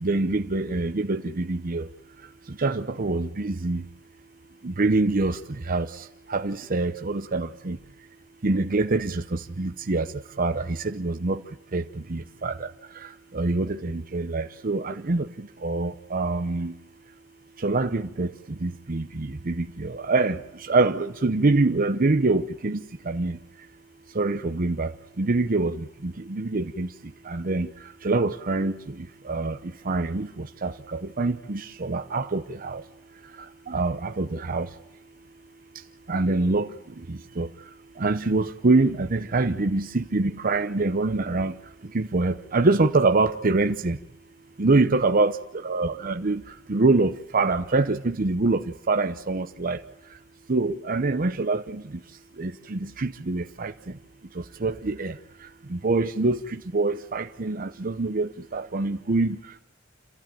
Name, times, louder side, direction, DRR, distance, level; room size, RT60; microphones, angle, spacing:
voice 1, 0.0-1.8 2.6-3.8 4.6-5.4 5.7-5.9 6.3-7.8 8.4-10.1 10.4-11.4 11.7-11.8 12.1-12.5 13.3-15.3 15.6-16.7 17.6-18.3 18.6-20.4 20.7-22.8 23.1-23.4 24.2-24.9 25.2-25.8 26.0-26.9 27.3-27.7 28.0-28.7 29.3-29.5 29.9-30.3 30.6-30.7 31.2-32.8 33.7-34.7 36.1-36.7 37.4-37.5 38.0-41.5 41.9-44.0 44.6-45.4 45.6-46.4 46.7-48.6 48.9-49.8 50.5-51.8 52.4-53.7 54.6-55.1 55.7-56.4 56.7-59.4, right 3 dB, 45° right, 0.8 m, -24 dB
27.5 x 15.0 x 9.0 m
head